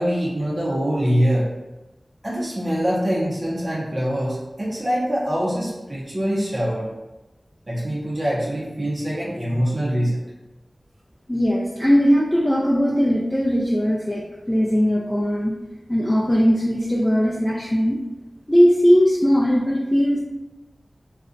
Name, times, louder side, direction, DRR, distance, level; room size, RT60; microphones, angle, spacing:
voice 1, 0.0-1.5 2.2-6.9 7.7-10.3, equal, 45° right, -5 dB, 0.6 m, -24 dB
voice 2, 11.3-15.5 15.9-18.0 18.5-20.2, equal, 15° left, -5 dB, 0.4 m, -19 dB
2.5 x 2.1 x 3.7 m, 1.1 s
wide cardioid pair, 45°, 0 cm